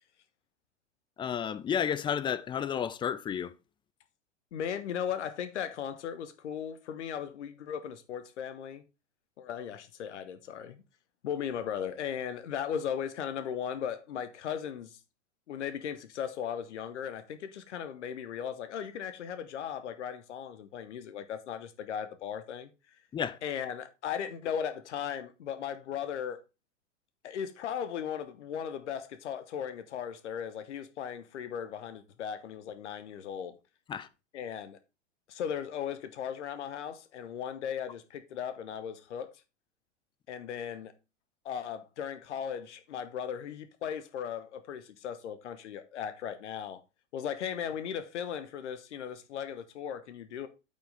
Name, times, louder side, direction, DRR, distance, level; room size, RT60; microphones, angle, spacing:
voice 1, 1.2-3.5 23.1-23.4 33.9-34.1, left 8 dB, 15° left, 0.5 m, -31 dB
voice 2, 4.5-8.8 9.4-10.8 11.2-15.0 15.5-22.7 23.4-26.4 27.2-33.5 34.3-34.8 35.3-39.3 40.3-40.9 41.4-46.8 47.1-50.5, left 8 dB, 70° left, 1.0 m, -37 dB
8.5 x 5.4 x 3.9 m
figure-of-eight pair, 95°, 36 cm